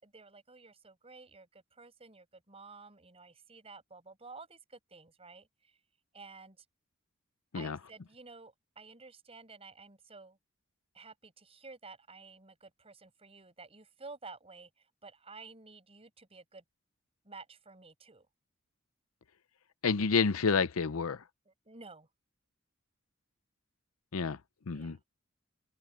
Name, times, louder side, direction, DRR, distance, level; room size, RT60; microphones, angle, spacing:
voice 1, 0.0-5.5 6.1-6.6 7.5-10.4 10.9-14.7 15.0-16.6 17.2-18.3 21.5-22.1 24.7-25.0, right 4 dB, 30° right, 6.2 m, -52 dB
voice 2, 19.8-21.2 24.1-24.4 24.7-25.0, left 5 dB, 85° left, 0.7 m, -29 dB
open air
head